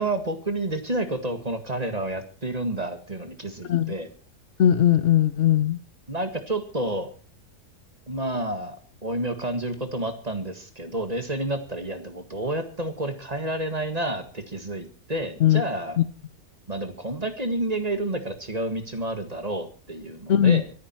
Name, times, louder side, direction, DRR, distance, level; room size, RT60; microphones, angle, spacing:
voice 1, 0.0-4.1 6.1-7.1 8.1-8.8 9.0-16.0 16.7-20.6, right 1 dB, 25° right, 8 dB, 1.9 m, -30 dB
voice 2, 4.6-5.8 15.4-15.6 16.0-16.1 20.3-20.6, left 10 dB, 55° left, 13 dB, 1.1 m, -19 dB
23.5 x 10.0 x 4.5 m, 0.36 s
omnidirectional pair, 1.7 m